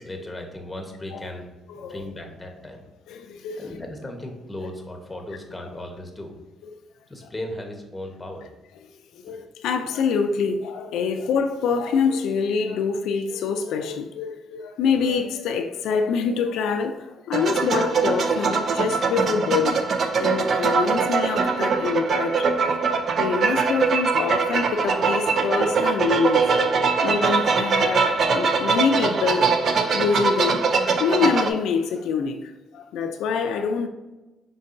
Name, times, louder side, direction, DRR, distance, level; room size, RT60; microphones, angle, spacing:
voice 1, 0.0-1.5 1.9-2.8 3.6-6.3 7.1-8.5, left 1 dB, 15° left, 1.0 m, -36 dB
voice 2, 1.7-2.1 3.1-3.8 7.2-7.3 8.8-8.9 9.2-19.8 20.2-22.6 23.2-26.4 26.9-29.5 29.9-30.6 31.0-33.9, left 5 dB, 85° left, 0.4 m, -25 dB
sound 1, 17.3-31.5, right 4 dB, 55° right, 0.5 m, -22 dB
5.3 x 3.8 x 2.6 m
cardioid pair, 90°, 0 cm